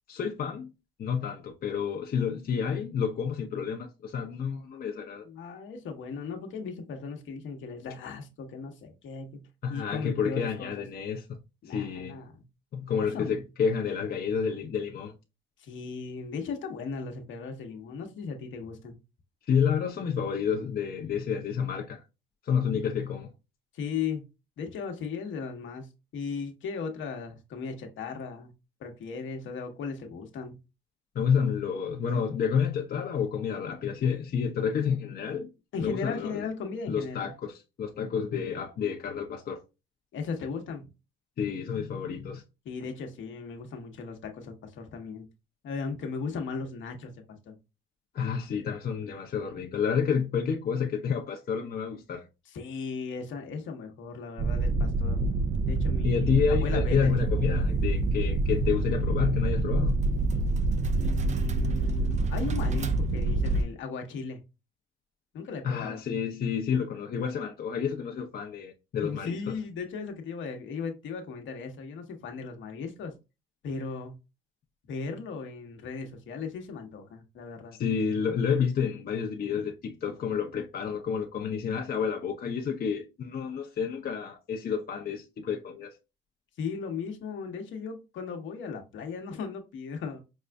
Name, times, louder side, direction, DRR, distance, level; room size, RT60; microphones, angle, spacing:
voice 1, 0.1-0.7 1.0-5.2 9.6-11.4 11.7-12.2 12.7-15.1 19.5-22.0 22.4-23.3 31.1-35.5 35.8-36.5 36.9-39.6 41.4-42.4 48.1-52.2 56.0-60.0 65.6-69.4 77.8-85.9, left 7 dB, 50° left, 0.7 m, -29 dB
voice 2, 5.2-10.8 11.6-12.4 13.0-13.4 15.6-19.0 22.7-22.9 23.7-24.3 24.6-28.5 28.8-30.6 35.7-37.3 40.1-40.9 42.6-45.3 45.6-47.6 52.5-55.2 55.6-57.1 60.9-64.4 65.3-66.0 69.0-73.1 73.6-74.1 74.9-77.8 86.6-90.2, left 5 dB, 75° left, 1.0 m, -37 dB
sound 1, 54.4-63.6, right 2 dB, 35° right, 0.4 m, -26 dB
5.3 x 2.4 x 2.2 m
cardioid pair, 90°, 20 cm